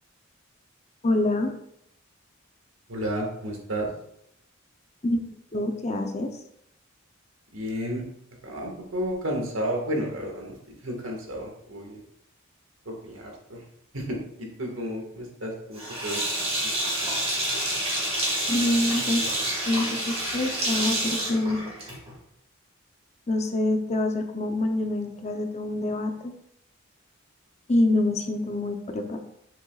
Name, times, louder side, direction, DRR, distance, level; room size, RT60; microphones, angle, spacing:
voice 1, 1.0-1.5 5.0-6.3 18.5-19.2 19.7-21.6 23.3-26.3 27.7-29.2, left 1 dB, 30° left, 5 dB, 0.7 m, -26 dB
voice 2, 2.9-3.9 7.5-8.0 8.4-12.0 12.9-13.6 13.9-16.2 16.6-16.7 17.0-17.1, equal, 70° right, 0 dB, 1.8 m, -32 dB
Sink (filling or washing), 15.8-22.2, right 1 dB, 30° right, 1.9 m, -28 dB
7.1 x 7.0 x 2.4 m, 0.74 s
head